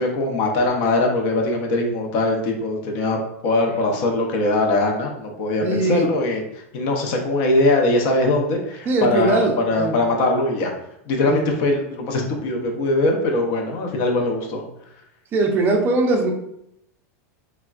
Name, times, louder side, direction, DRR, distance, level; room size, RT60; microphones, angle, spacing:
voice 1, 0.0-6.4 6.7-10.7 11.1-14.6, left 2 dB, 45° left, 2 dB, 0.6 m, -21 dB
voice 2, 5.6-6.1 8.9-9.9 11.3-11.4 15.3-16.3, right 2 dB, 25° right, 2 dB, 0.4 m, -20 dB
3.4 x 2.1 x 2.4 m, 0.77 s
supercardioid pair, 155°, 8 cm